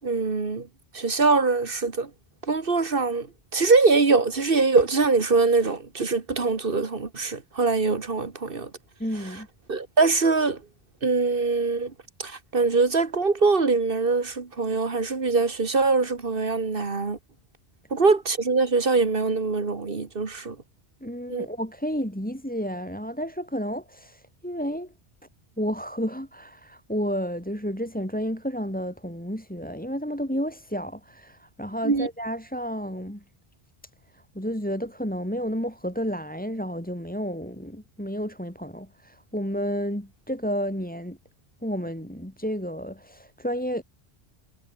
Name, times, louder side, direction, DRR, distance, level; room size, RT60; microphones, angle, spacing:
voice 1, 0.0-0.7 0.9-2.1 2.5-3.3 3.5-8.7 9.7-10.6 11.0-11.9 12.2-17.2 17.9-20.6 21.3-21.5 31.8-32.1, right 4 dB, 60° right, 1.9 m, -23 dB
voice 2, 9.0-9.5 21.0-24.9 25.6-33.2 34.1-41.2 41.6-43.8, equal, 10° left, 4.6 m, -31 dB
omnidirectional pair, 1.0 m